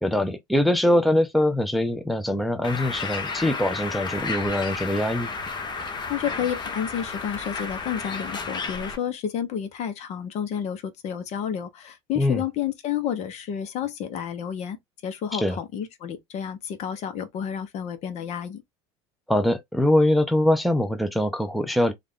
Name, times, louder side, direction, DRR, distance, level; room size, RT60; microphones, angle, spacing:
voice 1, 0.0-5.3 12.2-12.4 15.3-15.6 19.3-21.9, left 1 dB, ahead, 0.6 m, -23 dB
Bird, 2.6-9.0, left 4 dB, 30° left, 1.0 m, -32 dB
voice 2, 6.1-14.8 15.0-18.6, left 9 dB, 50° left, 0.9 m, -30 dB
3.3 x 2.5 x 3.6 m
hypercardioid pair, 90°, 14 cm